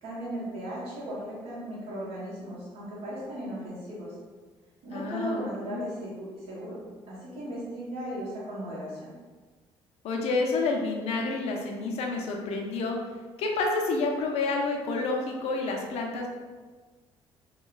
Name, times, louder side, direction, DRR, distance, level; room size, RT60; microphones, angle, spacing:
voice 1, 0.0-4.2 4.8-6.8 7.1-9.1, right 1 dB, 70° right, -8 dB, 1.2 m, -36 dB
voice 2, 4.9-5.4 5.7-5.8 10.0-13.0 13.4-16.3, left 3 dB, 70° left, 1 dB, 0.6 m, -29 dB
3.0 x 2.2 x 3.8 m, 1.4 s
cardioid pair, 165°, 11 cm